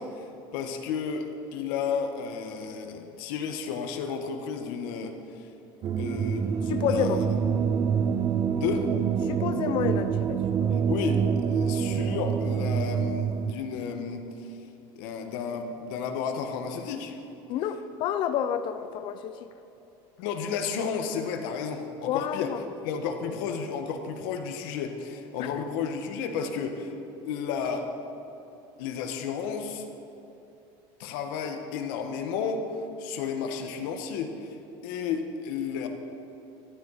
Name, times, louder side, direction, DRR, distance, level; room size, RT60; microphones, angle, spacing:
voice 1, 0.0-5.5 6.0-7.3 8.5-8.9 10.7-14.6 14.9-17.2 20.2-22.5 22.8-26.9 27.2-27.9 28.8-29.8 31.0-32.7 33.0-34.6 34.8-35.9, left 6 dB, 80° left, 5 dB, 1.6 m, -32 dB
sound 1, 5.8-13.5, right 7 dB, 30° right, 0.4 m, -26 dB
voice 2, 6.7-7.2 9.3-10.8 17.5-19.5 22.1-22.6 25.4-25.5, left 9 dB, 45° left, 10 dB, 0.7 m, -29 dB
14.0 x 13.0 x 5.0 m, 2.9 s
cardioid pair, 160°, 11 cm